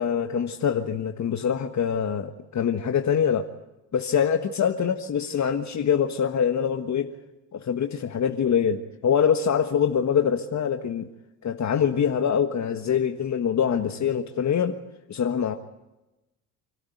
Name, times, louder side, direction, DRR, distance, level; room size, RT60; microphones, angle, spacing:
voice 1, 0.0-3.5 3.9-7.1 7.5-11.1 11.4-14.8 15.1-15.5, left 7 dB, 45° left, 7 dB, 1.4 m, -24 dB
27.5 x 13.0 x 9.4 m, 1.0 s
hypercardioid pair, 60°, 41 cm